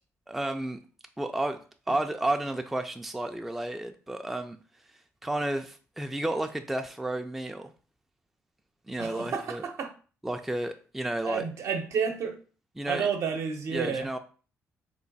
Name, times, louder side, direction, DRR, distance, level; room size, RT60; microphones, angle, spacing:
voice 1, 0.3-0.8 1.2-1.6 1.9-4.6 5.2-7.7 8.9-9.6 10.2-11.4 12.8-13.1 13.7-14.2, right 1 dB, 5° right, 0.3 m, -31 dB
voice 2, 9.0-9.9 11.2-12.3 12.9-14.1, right 6 dB, 65° right, 0.7 m, -30 dB
3.1 x 2.2 x 3.9 m
cardioid pair, 90°, 5 cm